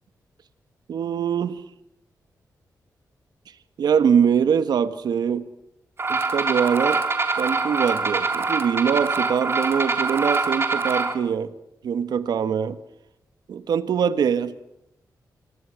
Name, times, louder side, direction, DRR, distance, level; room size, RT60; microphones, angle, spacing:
voice 1, 0.9-1.6 3.8-5.5 6.1-7.0 7.4-11.5 11.8-12.8 13.5-14.5, right 7 dB, 85° right, 12 dB, 1.6 m, -23 dB
sound 1, 6.0-11.1, right 4 dB, 35° right, 3.5 m, -24 dB
28.5 x 23.5 x 6.5 m, 0.80 s
cardioid pair, 100°, 7 cm